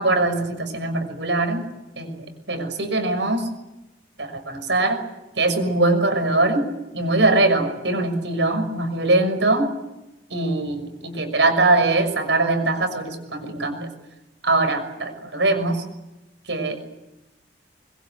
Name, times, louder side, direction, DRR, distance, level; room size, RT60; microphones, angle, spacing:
voice 1, 0.0-1.6 2.0-3.5 4.2-5.0 5.4-6.6 6.9-9.6 10.3-13.9 14.4-15.8 16.5-16.8, right 2 dB, 85° right, 6 dB, 6.1 m, -22 dB
25.0 x 22.5 x 8.3 m, 0.97 s
head